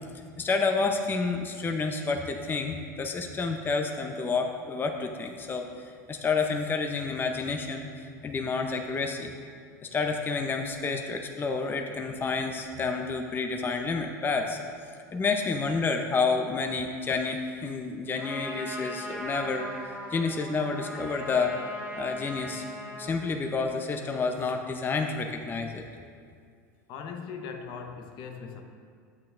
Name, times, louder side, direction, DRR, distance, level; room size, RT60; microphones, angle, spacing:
voice 1, 0.4-5.7 6.1-7.9 8.2-9.3 9.9-14.6 15.1-19.7 20.1-21.5 21.9-22.6 23.0-25.8, left 4 dB, 20° left, 4 dB, 0.6 m, -29 dB
Trumpet, 18.2-23.2, equal, 10° right, 1.6 m, -39 dB
voice 2, 26.9-28.6, left 6 dB, 55° left, 5 dB, 0.8 m, -39 dB
10.5 x 8.5 x 2.5 m, 2.2 s
hypercardioid pair, 90°, 9 cm